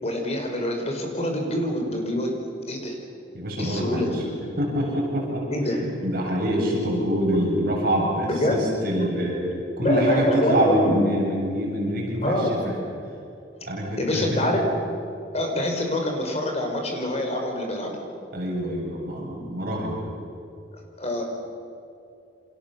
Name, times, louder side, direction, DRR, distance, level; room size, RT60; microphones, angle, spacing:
voice 1, 0.0-2.3 2.7-3.0 3.6-4.4 5.5-5.8 8.2-8.7 9.8-11.0 12.2-12.6 14.0-14.6 15.3-17.9 21.0-21.2, left 1 dB, 35° left, 2 dB, 5.3 m, -25 dB
voice 2, 3.3-4.2 4.6-5.5 5.8-9.4 9.8-12.7 13.7-14.5 18.3-20.1, equal, 55° right, -2 dB, 7.7 m, -26 dB
29.5 x 27.0 x 7.2 m, 2.6 s
head